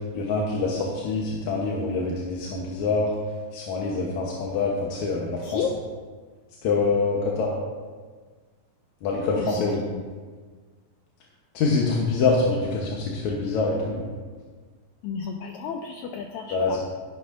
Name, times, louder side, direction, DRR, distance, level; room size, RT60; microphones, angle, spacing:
voice 1, 0.1-3.1 3.5-5.7 6.6-7.5 9.0-9.8 11.5-14.1 16.5-16.8, left 3 dB, 65° left, -2 dB, 2.1 m, -25 dB
voice 2, 15.0-16.8, left 7 dB, 80° left, 4 dB, 1.7 m, -32 dB
14.0 x 11.5 x 2.6 m, 1.5 s
omnidirectional pair, 4.0 m